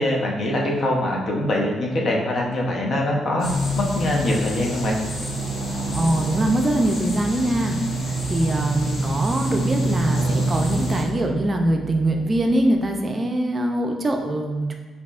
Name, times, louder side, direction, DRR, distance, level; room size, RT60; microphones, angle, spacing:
voice 1, 0.0-3.5 3.8-5.0 8.8-8.9, left 1 dB, 50° left, -1 dB, 0.7 m, -23 dB
sound 1, 3.4-11.0, right 1 dB, 70° left, 1.0 m, -26 dB
Musical instrument, 3.5-12.8, left 2 dB, 35° left, 1.1 m, -40 dB
voice 2, 5.9-7.8 8.1-14.7, right 1 dB, 30° right, 3 dB, 0.4 m, -23 dB
4.5 x 2.8 x 2.4 m, 1.4 s
cardioid pair, 90°, 0 cm